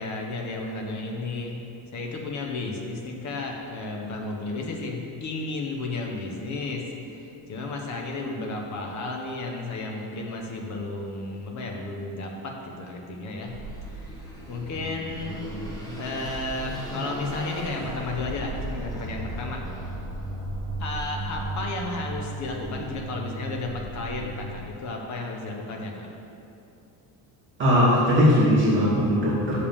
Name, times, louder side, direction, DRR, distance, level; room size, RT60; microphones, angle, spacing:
voice 1, 0.0-13.6 13.9-14.2 14.5-15.4 16.0-19.6 20.8-26.1, left 2 dB, 35° left, 1 dB, 1.0 m, -33 dB
Car passing by / Accelerating revving vroom, 13.4-24.7, right 1 dB, 10° left, 1.1 m, -35 dB
voice 2, 27.6-29.7, equal, 25° right, -7 dB, 2.0 m, -19 dB
6.6 x 5.4 x 7.1 m, 2.7 s
cardioid pair, 170°, 48 cm